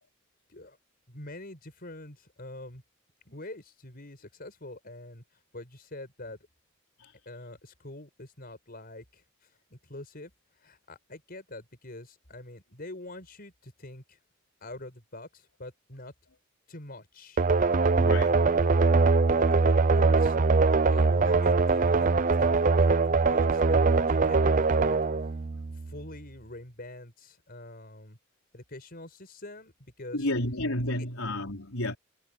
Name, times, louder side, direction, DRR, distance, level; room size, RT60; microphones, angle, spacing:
voice 1, 1.1-2.8 3.3-5.2 5.5-6.4 7.3-14.2 14.6-16.1 16.7-17.4 18.3-18.7 19.3-20.4 20.8-25.0 25.2-25.4 25.7-28.2 28.5-30.3, left 2 dB, 45° left, 5.3 m, -45 dB
sound 1, 17.4-26.1, right 4 dB, 40° right, 0.6 m, -22 dB
voice 2, 18.0-18.4 30.1-32.0, left 1 dB, 90° left, 4.5 m, -31 dB
head